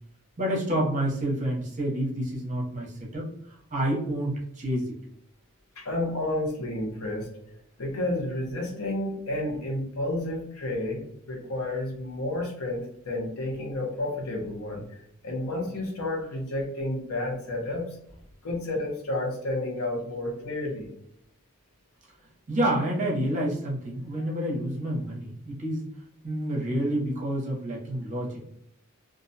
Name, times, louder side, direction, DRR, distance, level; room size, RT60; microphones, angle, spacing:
voice 1, 0.4-3.3 3.7-4.9 22.5-25.9 26.2-28.5, right 1 dB, 35° right, -3 dB, 0.7 m, -28 dB
voice 2, 5.8-7.3 7.8-18.0 18.4-20.9 24.2-24.3, left 1 dB, 75° left, 0 dB, 0.8 m, -31 dB
2.4 x 2.1 x 2.6 m, 0.71 s
head